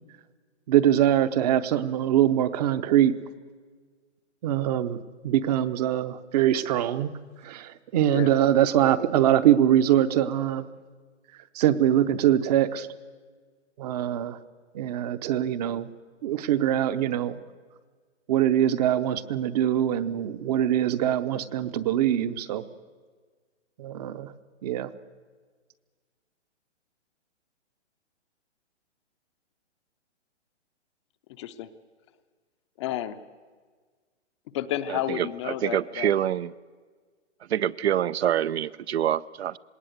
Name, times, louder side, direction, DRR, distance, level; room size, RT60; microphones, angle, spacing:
voice 1, 0.7-3.1 4.4-5.0 5.2-7.1 7.4-10.6 11.5-12.9 13.8-14.4 14.7-15.9 16.2-17.3 18.3-22.6 23.8-24.3 24.6-24.9, right 11 dB, 35° right, 13 dB, 0.9 m, -23 dB
voice 2, 31.3-31.7 32.8-33.2 34.5-36.1, left 12 dB, 25° left, 10 dB, 0.6 m, -31 dB
voice 3, 34.9-36.5 37.5-39.6, right 10 dB, 65° right, 17 dB, 0.6 m, -26 dB
19.5 x 18.5 x 8.0 m, 1.5 s
hypercardioid pair, 145°, 35 cm